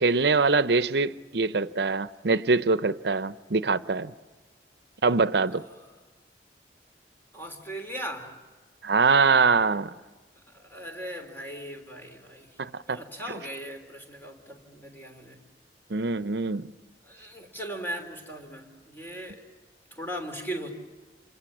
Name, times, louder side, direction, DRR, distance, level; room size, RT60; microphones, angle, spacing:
voice 1, 0.0-4.1 5.0-5.6 8.8-9.9 12.6-13.0 15.9-16.7, right 4 dB, 70° right, 0.8 m, -23 dB
voice 2, 5.5-6.0 7.3-8.4 10.3-15.4 17.0-19.4 19.9-20.7, right 1 dB, 10° left, 3.3 m, -39 dB
27.5 x 26.0 x 7.4 m
head